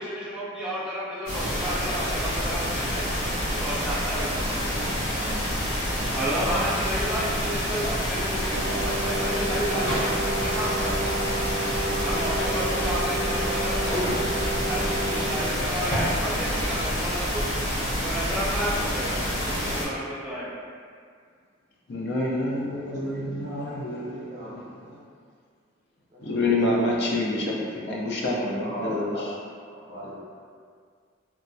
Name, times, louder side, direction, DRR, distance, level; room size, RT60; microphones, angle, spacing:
voice 1, 0.0-3.3 3.6-5.5 6.1-11.4 12.0-13.9 14.7-17.5 18.0-20.6, equal, 5° right, -9 dB, 0.5 m, -32 dB
sound 1, 1.3-19.8, equal, 85° left, 0.9 m, -28 dB
sound 2, 7.2-16.8, equal, 35° left, 0.8 m, -36 dB
Brass instrument, 8.5-15.5, right 1 dB, 80° right, 0.4 m, -31 dB
voice 2, 21.9-25.0 26.2-29.3 29.9-30.1, left 2 dB, 60° left, -3 dB, 0.4 m, -28 dB
voice 3, 24.3-24.6 26.1-26.4 28.6-29.3 29.6-30.4, equal, 40° right, -7 dB, 0.7 m, -38 dB
3.1 x 2.1 x 2.5 m, 2.1 s
head